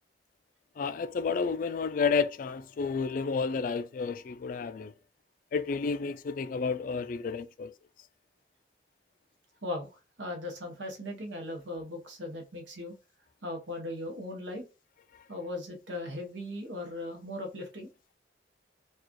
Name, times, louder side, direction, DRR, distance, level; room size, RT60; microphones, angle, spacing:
voice 1, 0.8-4.9 5.5-7.7, left 5 dB, 50° left, 0.3 m, -31 dB
voice 2, 10.2-12.9 13.4-14.6 15.3-17.9, left 1 dB, 90° right, 1.0 m, -38 dB
4.6 x 2.4 x 2.9 m
head